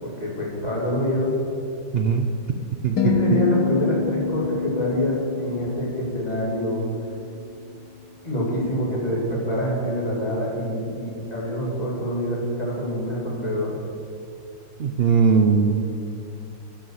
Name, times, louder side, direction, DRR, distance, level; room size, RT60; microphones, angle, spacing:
voice 1, 0.0-1.3 3.0-6.8 8.2-13.7, equal, 20° left, -4 dB, 3.0 m, -26 dB
voice 2, 1.9-2.4 2.8-3.0 14.8-15.8, right 5 dB, 75° right, 4 dB, 0.5 m, -19 dB
sound 1, 3.0-7.3, left 6 dB, 65° left, 1.3 m, -27 dB
15.0 x 7.6 x 6.6 m, 2.6 s
omnidirectional pair, 2.0 m